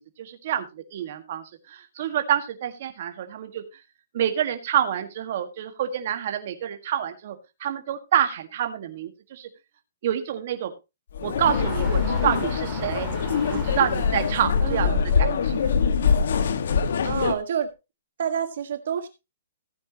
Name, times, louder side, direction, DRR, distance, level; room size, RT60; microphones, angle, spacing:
voice 1, 0.0-3.6 4.1-9.5 10.0-10.7 11.2-13.2 13.5-14.9 15.2-15.7, right 10 dB, 45° right, 6 dB, 1.7 m, -27 dB
sound 1, 11.1-17.3, left 6 dB, 65° left, 1.6 m, -23 dB
sound 2, 11.5-16.5 17.1-17.2, equal, 5° left, 3.9 m, -37 dB
voice 2, 14.6-15.0 17.0-17.7 18.2-19.1, right 8 dB, 60° right, 8 dB, 1.6 m, -28 dB
15.5 x 9.2 x 2.9 m, 0.26 s
hypercardioid pair, 165°, 0 cm